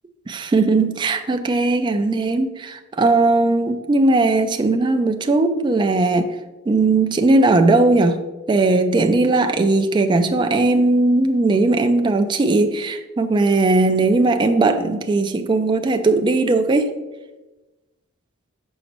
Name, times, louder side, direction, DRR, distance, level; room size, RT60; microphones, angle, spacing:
voice 1, 0.3-6.3 6.7-8.2 8.5-16.9, right 2 dB, 20° right, 6 dB, 0.3 m, -18 dB
6.4 x 5.0 x 3.0 m, 1.1 s
head